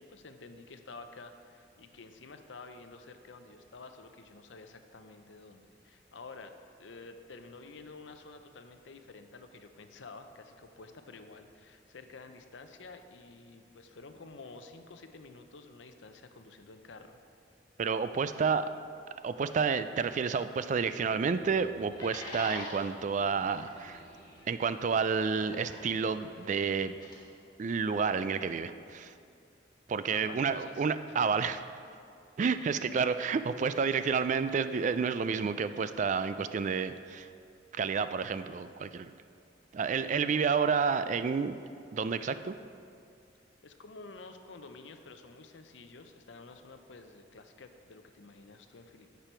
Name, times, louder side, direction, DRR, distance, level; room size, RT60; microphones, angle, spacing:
voice 1, 0.0-6.5 6.8-17.2 30.1-31.2 43.6-49.2, left 3 dB, 75° left, 7 dB, 0.6 m, -50 dB
voice 2, 17.8-18.7 19.2-24.0 24.5-27.0 27.6-29.1 29.9-31.6 32.4-37.3 37.7-39.1 39.7-41.6 41.9-42.5, right 5 dB, 40° right, 12 dB, 0.3 m, -30 dB
sound 1, 20.9-27.1, left 1 dB, 25° left, 1.7 m, -48 dB
10.5 x 6.9 x 4.4 m, 2.4 s
head